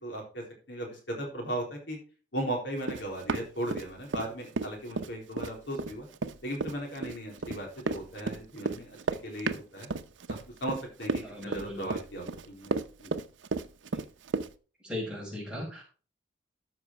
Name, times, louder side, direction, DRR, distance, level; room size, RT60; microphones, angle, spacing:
voice 1, 0.0-2.0 2.3-6.1 6.4-9.0 9.2-9.9 10.3-12.7 13.0-13.1, right 1 dB, 70° left, 1 dB, 3.7 m, -37 dB
Run, 2.8-4.3 4.6-14.5, right 3 dB, 85° right, 0.7 m, -33 dB
voice 2, 11.2-11.9 14.8-15.8, left 1 dB, 5° right, -4 dB, 5.0 m, -37 dB
13.0 x 5.9 x 4.6 m, 0.37 s
head